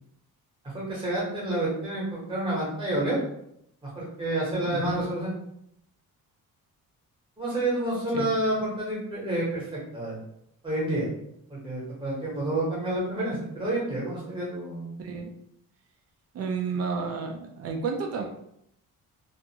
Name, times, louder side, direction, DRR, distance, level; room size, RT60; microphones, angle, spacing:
voice 1, 0.6-3.2 3.9-5.3 7.4-10.2 10.6-11.1 11.5-14.9, right 1 dB, 15° right, -6 dB, 1.0 m, -29 dB
voice 2, 4.6-5.0 8.1-8.3 15.0-15.3 16.3-18.2, right 5 dB, 45° right, 3 dB, 0.4 m, -31 dB
2.5 x 2.3 x 2.8 m, 0.75 s
cardioid pair, 170°, 36 cm